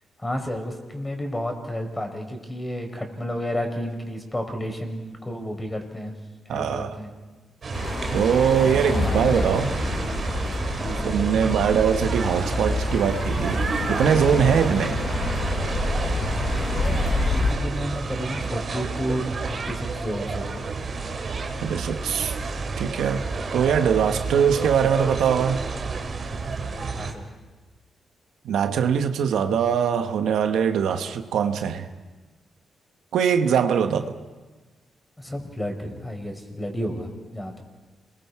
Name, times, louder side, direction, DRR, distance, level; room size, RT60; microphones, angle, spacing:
voice 1, 0.2-6.1 6.4-7.1 8.8-9.5 10.7-11.1 16.6-16.9 17.3-20.6 26.9-27.2 35.2-37.6, equal, 15° left, 4.8 m, -31 dB
voice 2, 6.5-7.0 8.1-9.7 11.0-15.0 21.6-22.3 22.8-23.2 23.5-25.6 28.4-31.9 33.1-34.1, right 7 dB, 90° right, 1.1 m, -22 dB
sound 1, 7.6-27.1, right 4 dB, 55° right, 2.7 m, -30 dB
sound 2, 7.7-17.5, left 2 dB, 45° left, 6.9 m, -27 dB
28.5 x 22.0 x 4.8 m
cardioid pair, 75°, 0 cm